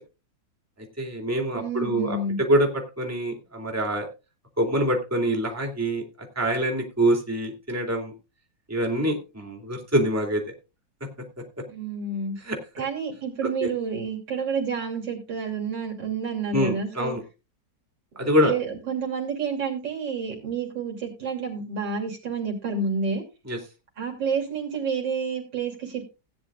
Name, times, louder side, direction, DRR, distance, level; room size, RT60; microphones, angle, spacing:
voice 1, 1.0-2.7 3.0-4.1 4.6-8.1 8.7-10.4 12.4-12.8 13.6-13.7 16.5-17.2 18.2-18.5 23.5-23.6, right 1 dB, 10° right, 2 dB, 2.3 m, -25 dB
voice 2, 1.5-2.4 11.7-12.3 12.8-17.2 18.2-23.2 24.0-26.1, right 5 dB, 80° right, 1 dB, 3.5 m, -29 dB
17.0 x 9.6 x 2.5 m, 0.29 s
omnidirectional pair, 1.9 m